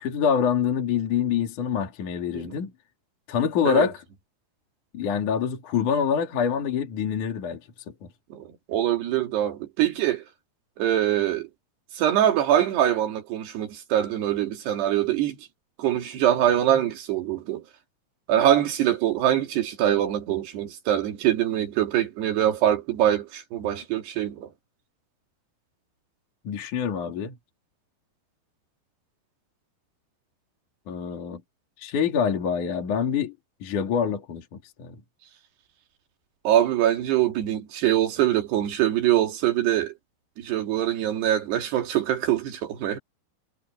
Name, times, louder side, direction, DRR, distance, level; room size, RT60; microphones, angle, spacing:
voice 1, 0.0-2.7 3.3-4.0 4.9-7.6 8.0-8.1 26.5-27.4 30.9-31.4 31.8-33.3 33.6-34.4 34.8-35.0, left 7 dB, 50° left, 4.0 m, -25 dB
voice 2, 8.3-10.2 10.8-11.5 12.0-15.4 15.8-17.6 18.3-24.5 36.4-39.9 40.4-43.0, right 11 dB, 85° right, 4.6 m, -23 dB
omnidirectional pair, 4.6 m